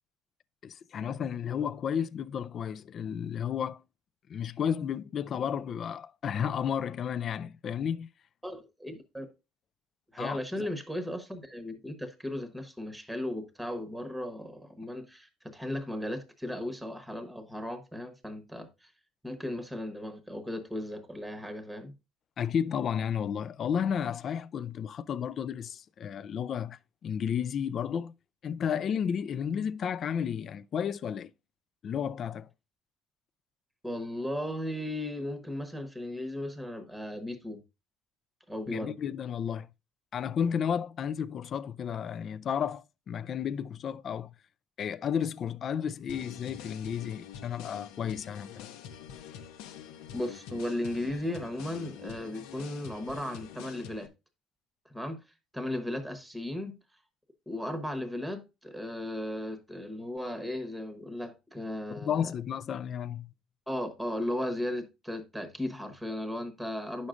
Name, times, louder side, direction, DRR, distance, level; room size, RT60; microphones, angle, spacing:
voice 1, 0.6-3.8 4.3-8.1 10.2-10.7 22.4-28.1 28.4-31.3 31.8-32.5 38.7-39.7 40.1-44.3 44.8-48.7 62.0-63.3, left 8 dB, 35° left, 0.3 m, -32 dB
voice 2, 8.4-9.3 10.1-18.9 19.2-21.9 33.8-37.6 38.5-39.0 50.1-54.1 54.8-55.2 55.5-56.8 57.5-62.3 63.7-67.1, left 1 dB, 5° right, 1.0 m, -36 dB
sound 1, 46.1-54.1, left 8 dB, 85° left, 0.8 m, -46 dB
9.5 x 6.3 x 2.5 m
cardioid pair, 145°, 0 cm